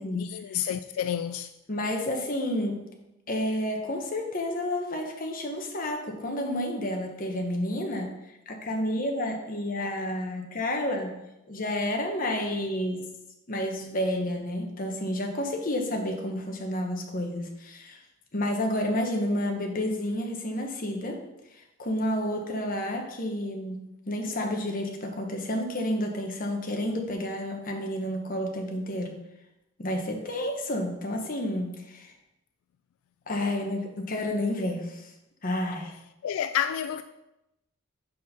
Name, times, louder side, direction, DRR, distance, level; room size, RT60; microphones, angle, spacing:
voice 1, 0.1-1.5 36.2-37.0, left 9 dB, 85° left, 0.3 m, -29 dB
voice 2, 1.7-2.8 3.3-8.1 8.5-13.1 13.5-18.0 18.3-21.2 21.8-29.2 29.8-32.1 33.3-35.1 35.4-35.9, left 1 dB, 40° left, 1.1 m, -30 dB
5.3 x 5.3 x 5.6 m
head